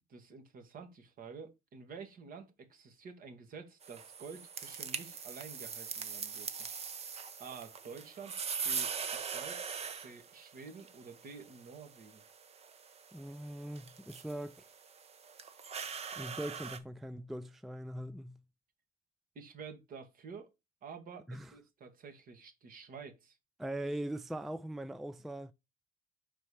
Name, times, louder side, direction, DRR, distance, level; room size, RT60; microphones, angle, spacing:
voice 1, 0.1-6.7 7.4-8.4 8.6-12.2 19.3-20.5 20.8-23.4, right 5 dB, 55° right, 1.6 m, -50 dB
sound 1, 3.8-16.8, right 6 dB, 40° right, 0.8 m, -42 dB
voice 2, 13.1-14.7 16.2-18.4 21.3-21.5 23.6-25.5, right 1 dB, ahead, 0.3 m, -41 dB
5.5 x 4.3 x 4.8 m
cardioid pair, 110°, 17 cm